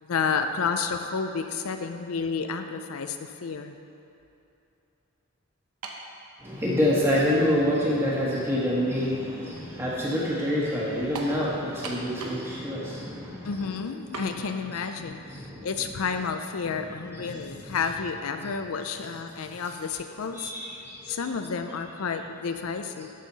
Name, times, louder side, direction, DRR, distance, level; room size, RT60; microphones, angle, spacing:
voice 1, 0.0-3.7 13.4-20.5 21.1-23.1, left 5 dB, 75° left, 7 dB, 0.4 m, -31 dB
sound 1, 5.8-6.1 7.0-7.1 11.1-11.4 11.8-12.5 12.8-12.9 14.1-14.3, right 3 dB, 90° right, 0.9 m, -37 dB
voice 2, 6.4-13.8 14.1-14.4 15.0-15.7 17.1-17.8 20.3-21.2, equal, 10° right, -6 dB, 1.5 m, -27 dB
12.5 x 5.5 x 4.1 m, 2.8 s
head